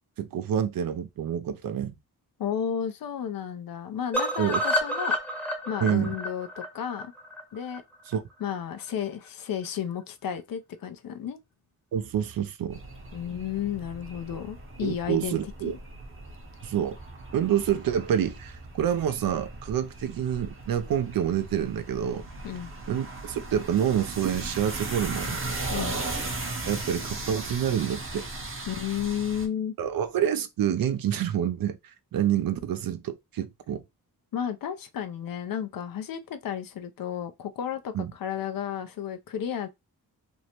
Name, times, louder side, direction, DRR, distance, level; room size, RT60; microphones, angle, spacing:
voice 1, 0.2-2.0 4.4-4.6 5.8-6.2 8.1-8.2 11.9-12.8 14.8-15.7 16.6-17.0 17.3-22.2 22.9-25.4 26.7-28.3 29.8-31.8 32.1-33.8 37.9-38.1, right 9 dB, 65° right, 0.5 m, -27 dB
voice 2, 2.4-5.2 5.7-7.1 7.5-7.8 8.4-11.4 13.1-15.7 22.4-22.7 25.7-26.0 28.7-29.7 34.3-39.7, left 9 dB, 65° left, 0.5 m, -32 dB
sound 1, 4.1-8.2 8.5-8.6 8.9-9.0 9.3-9.4, equal, 5° left, 0.8 m, -30 dB
sound 2, 12.7-29.5, right 2 dB, 35° right, 0.8 m, -37 dB
2.6 x 2.1 x 2.8 m
cardioid pair, 75°, 38 cm